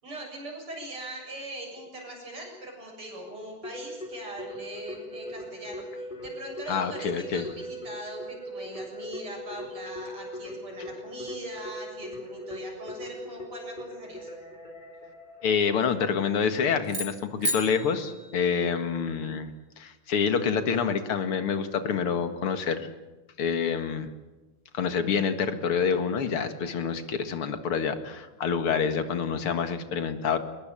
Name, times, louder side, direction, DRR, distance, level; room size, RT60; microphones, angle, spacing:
voice 1, 0.0-14.3, right 1 dB, 85° right, 0 dB, 8.4 m, -41 dB
Keyboard (musical), 3.6-16.1, equal, 20° left, 4.2 m, -40 dB
voice 2, 6.7-7.5 15.4-19.5 19.8-22.9 23.4-24.1 24.7-30.4, left 6 dB, 85° left, 9 dB, 2.7 m, -27 dB
sound 1, 16.8-19.2, equal, 55° right, 3.7 m, -34 dB
22.5 x 21.0 x 9.0 m, 1.1 s
omnidirectional pair, 2.4 m